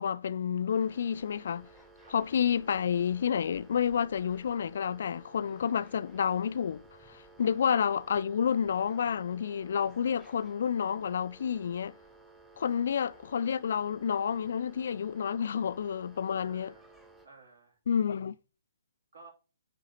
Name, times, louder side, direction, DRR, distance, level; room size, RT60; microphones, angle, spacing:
voice 1, 0.0-1.7 2.1-12.0 12.6-16.7 17.9-18.3, left 7 dB, 55° left, 0.3 m, -30 dB
sound 1, 0.7-17.3, right 3 dB, 5° right, 0.8 m, -56 dB
voice 2, 16.4-16.9 17.2-17.8 19.1-19.3, right 4 dB, 65° right, 2.9 m, -55 dB
9.6 x 3.6 x 4.1 m
figure-of-eight pair, 130°, 0 cm